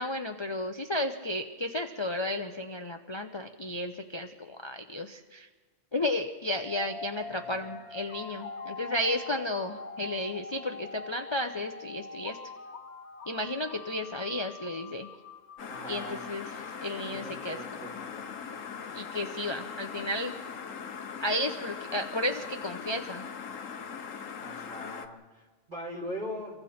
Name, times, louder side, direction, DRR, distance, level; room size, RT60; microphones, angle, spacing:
voice 1, 0.0-5.5 5.9-12.4 13.3-15.1 15.9-17.9 18.9-20.3 21.2-23.3, left 1 dB, 25° left, 5 dB, 0.8 m, -33 dB
sound 1, 6.5-17.5, left 3 dB, 55° left, 1.3 m, -44 dB
voice 2, 7.3-7.7 15.7-16.2 17.0-18.3 24.4-26.6, equal, 40° right, -2 dB, 4.0 m, -41 dB
sound 2, 15.6-25.1, left 6 dB, 85° left, 1.4 m, -40 dB
27.5 x 23.5 x 4.4 m, 1.3 s
omnidirectional pair, 1.3 m